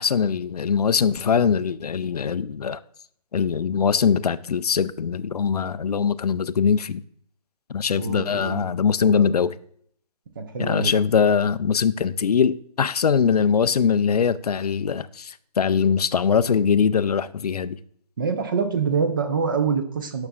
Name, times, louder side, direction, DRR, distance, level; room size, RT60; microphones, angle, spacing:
voice 1, 0.0-2.8 3.3-7.0 7.7-9.5 10.6-17.8, left 6 dB, 70° left, 0.4 m, -22 dB
voice 2, 7.9-8.7 9.0-9.3 10.4-11.0 18.2-20.3, right 5 dB, 30° right, 0.7 m, -26 dB
9.7 x 6.1 x 2.3 m
figure-of-eight pair, 160°, 20 cm